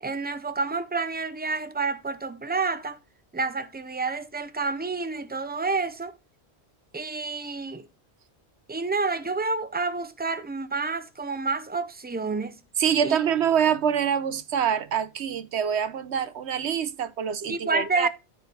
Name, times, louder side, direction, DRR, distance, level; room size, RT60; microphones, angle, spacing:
voice 1, 0.0-3.0 3.3-6.1 6.9-7.9 8.7-12.6 13.0-13.2 17.5-18.1, right 3 dB, 10° right, 0.7 m, -29 dB
voice 2, 12.8-18.1, right 8 dB, 90° right, 1.1 m, -25 dB
13.5 x 4.5 x 4.1 m
omnidirectional pair, 1.1 m